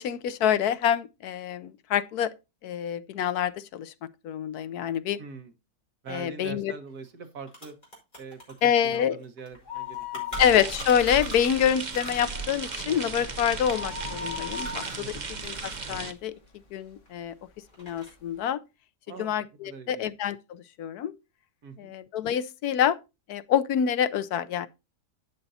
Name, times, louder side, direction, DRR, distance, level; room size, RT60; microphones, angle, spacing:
voice 1, 0.0-2.3 2.6-3.9 4.2-5.2 6.1-6.7 8.6-9.2 10.4-15.1 15.4-15.5 15.9-16.3 16.7-17.3 17.8-18.6 19.2-21.1 21.8-23.0 23.3-24.7, left 9 dB, 85° left, 1.2 m, -26 dB
voice 2, 5.2-5.5 6.0-7.8 8.2-10.4 15.0-15.4 19.1-20.1 21.6-22.0, right 5 dB, 80° right, 2.0 m, -43 dB
sound 1, 6.9-7.0 7.2-11.6 11.9-15.9 16.2-17.3 17.7-18.3, equal, 30° left, 6.0 m, -45 dB
sound 2, 9.5-11.2 11.5-11.6 12.1-16.5 17.0-17.1 17.9-18.0 18.2-18.3, left 6 dB, 50° left, 1.7 m, -38 dB
sound 3, 10.3-16.1, right 4 dB, 30° right, 1.0 m, -36 dB
11.5 x 9.0 x 2.7 m
omnidirectional pair, 1.6 m